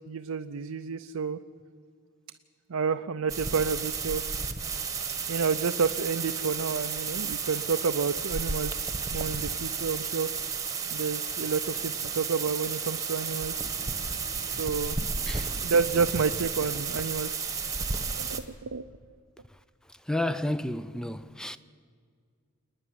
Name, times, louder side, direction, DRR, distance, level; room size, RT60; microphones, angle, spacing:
voice 1, 0.0-1.4 2.7-4.2 5.3-10.3 10.9-13.7 14.5-15.0 15.5-17.5 18.1-18.8, right 5 dB, 90° right, 0.6 m, -30 dB
sound 1, 3.3-18.4, right 5 dB, 15° right, 1.2 m, -32 dB
sound 2, 13.4-15.0, left 1 dB, 45° left, 3.9 m, -49 dB
voice 2, 20.1-21.6, left 1 dB, 5° left, 0.4 m, -31 dB
28.0 x 9.9 x 9.8 m
head